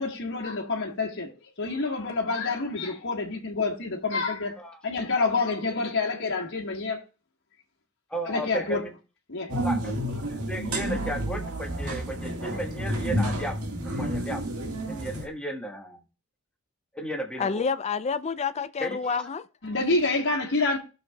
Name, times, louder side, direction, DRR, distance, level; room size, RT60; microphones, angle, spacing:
voice 1, 0.0-4.6 4.8-7.0 8.2-8.8 9.3-9.6 19.6-20.8, left 3 dB, 60° left, 1.5 m, -28 dB
voice 2, 8.1-8.9 9.5-13.5 13.8-14.4 14.8-16.0 16.9-17.6 18.8-19.2, right 1 dB, 5° left, 1.4 m, -35 dB
sound 1, 9.5-15.3, right 1 dB, 75° right, 1.7 m, -30 dB
voice 3, 17.4-19.4, left 5 dB, 30° left, 0.4 m, -28 dB
18.0 x 6.3 x 2.3 m
head